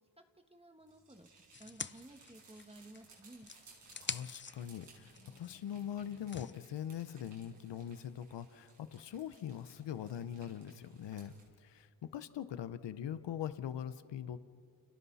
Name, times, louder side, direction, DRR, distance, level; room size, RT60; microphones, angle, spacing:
voice 1, 0.5-3.5, right 1 dB, 15° right, 5 dB, 2.0 m, -55 dB
sound 1, 0.8-11.5, right 4 dB, 85° right, 7.5 m, -63 dB
sound 2, 1.5-3.1 3.4-6.5, left 5 dB, 25° left, 0.7 m, -46 dB
voice 2, 4.0-14.4, left 9 dB, 85° left, 13 dB, 0.9 m, -42 dB
30.0 x 29.0 x 4.2 m, 2.2 s
cardioid pair, 50°, 42 cm